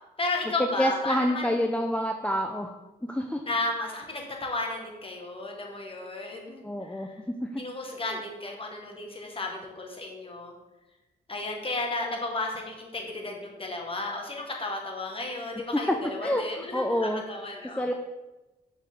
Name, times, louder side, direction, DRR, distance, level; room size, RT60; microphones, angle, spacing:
voice 1, 0.2-1.5 3.5-7.2 7.6-10.5 11.3-17.9, left 2 dB, 30° left, 1 dB, 1.5 m, -33 dB
voice 2, 0.8-2.7 3.0-3.4 6.6-7.6 8.1-8.2 15.7-17.2 17.8-17.9, equal, 5° left, 3 dB, 0.5 m, -28 dB
5.9 x 4.5 x 3.6 m, 1.1 s
supercardioid pair, 60°, 18 cm